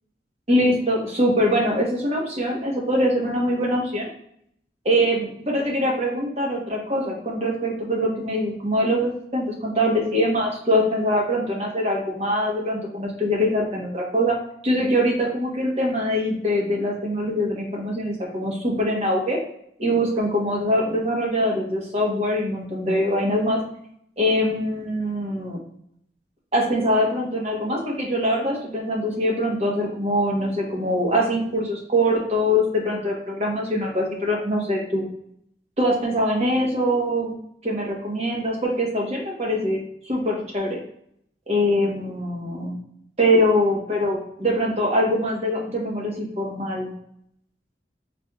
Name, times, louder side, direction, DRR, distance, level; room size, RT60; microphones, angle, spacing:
voice 1, 0.5-4.1 4.8-14.4 14.6-19.4 19.8-23.6 24.2-25.6 26.5-35.0 35.8-37.4 37.6-39.8 40.0-40.8 41.5-42.7 43.2-46.9, equal, 35° right, -2 dB, 1.1 m, -23 dB
4.3 x 3.4 x 2.3 m, 0.70 s
head